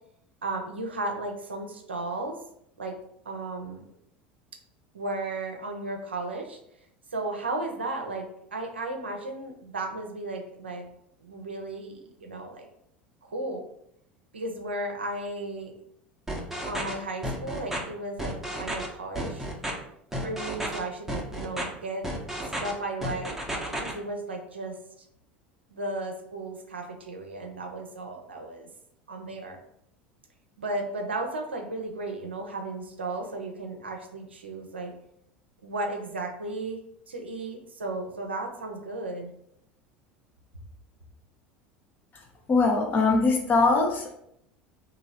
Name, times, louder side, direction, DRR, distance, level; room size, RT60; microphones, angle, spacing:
voice 1, 0.4-2.4 2.8-3.0 3.2-3.8 4.9-6.6 7.1-10.9 11.2-12.7 13.2-13.6 14.3-15.7 16.6-19.5 20.2-22.1 22.6-23.4 23.7-24.8 25.7-28.7 29.1-29.6 30.6-34.9 35.6-36.8 37.1-39.3, right 2 dB, 85° right, 3 dB, 0.6 m, -34 dB
sound 1, 16.3-16.9 17.2-17.8 18.2-18.9 19.1-19.7 20.1-20.8 21.1-21.6 22.0-22.7 23.0-23.9, right 1 dB, 5° right, 0.8 m, -32 dB
voice 2, 42.5-44.1, left 3 dB, 30° left, 1 dB, 0.9 m, -22 dB
3.0 x 2.7 x 3.9 m, 0.74 s
figure-of-eight pair, 75°, 6 cm